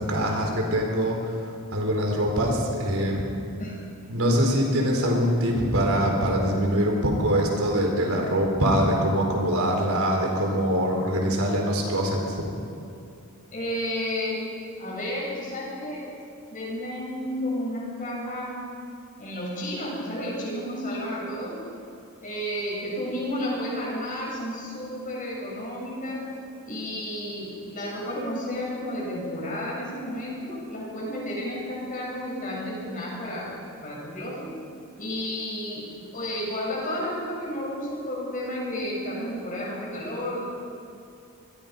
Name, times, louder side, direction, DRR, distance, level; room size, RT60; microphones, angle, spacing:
voice 1, 0.1-1.3 1.7-3.3 4.1-12.4, equal, 70° right, 1 dB, 4.4 m, -23 dB
voice 2, 4.2-4.6 13.5-14.5 14.7-16.1 16.5-18.7 19.2-21.6 22.2-26.3 26.6-33.6 33.8-34.5 35.0-40.4, left 1 dB, 35° left, -4 dB, 7.8 m, -32 dB
26.0 x 21.5 x 5.4 m, 2.5 s
head